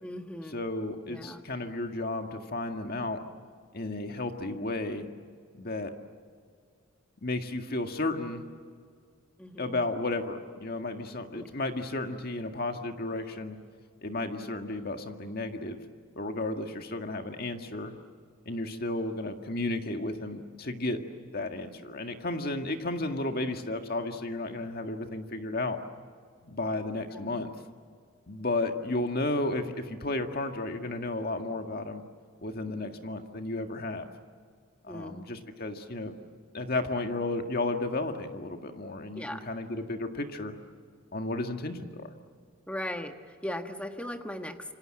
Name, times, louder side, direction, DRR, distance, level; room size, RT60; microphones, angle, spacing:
voice 1, 0.0-0.6 1.1-1.4 9.4-9.8 11.3-11.5 27.1-27.4 34.9-35.2 39.1-39.4 42.7-44.7, left 1 dB, 5° left, 6 dB, 1.4 m, -38 dB
voice 2, 0.5-3.2 3.7-5.1 5.5-5.9 7.2-8.4 9.6-13.6 14.0-15.8 16.2-17.9 18.5-21.0 21.3-25.8 26.4-27.5 28.3-32.0 32.4-34.1 34.8-36.1 36.5-40.6 41.1-42.1, left 2 dB, 45° left, 5 dB, 1.9 m, -33 dB
27.5 x 25.0 x 7.8 m, 2.1 s
head